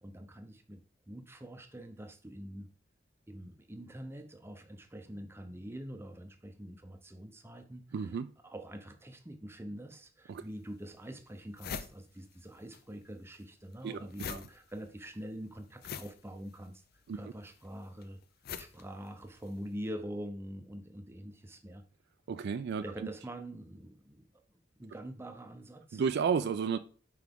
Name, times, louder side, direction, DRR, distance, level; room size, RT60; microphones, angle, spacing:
voice 1, 0.0-2.7 3.3-16.8 17.1-18.2 18.6-21.8 22.8-26.0, equal, 15° right, 0.6 m, -45 dB
voice 2, 7.9-8.3 10.3-10.4 13.8-14.0 14.3-14.4 17.1-17.2 22.3-22.8 25.9-26.8, right 6 dB, 60° right, 0.3 m, -31 dB
sound 1, 10.3-10.4 11.0-11.1 11.3-12.8 13.1-19.6, left 7 dB, 55° left, 0.4 m, -45 dB
5.9 x 4.7 x 3.5 m
head